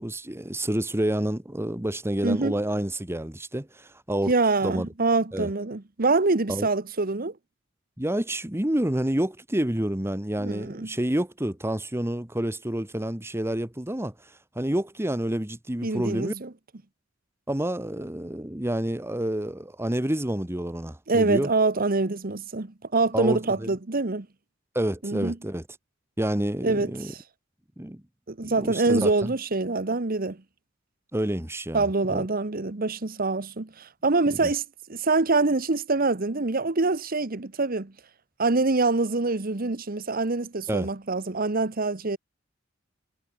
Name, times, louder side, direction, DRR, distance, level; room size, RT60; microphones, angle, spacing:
voice 1, 0.0-4.3 4.6-4.9 5.3-5.5 6.5-6.7 8.0-16.3 17.5-21.5 23.1-23.7 24.7-25.6 26.2-27.1 27.8-28.0 28.4-29.3 31.1-32.2 34.4-34.5 40.7-40.9, right 1 dB, 10° right, 1.4 m, -28 dB
voice 2, 4.3-7.3 10.4-10.9 15.8-16.5 21.1-24.3 25.0-25.3 26.6-27.2 28.3-30.4 31.7-34.6 34.9-37.9 38.4-42.2, right 3 dB, 45° right, 1.2 m, -25 dB
head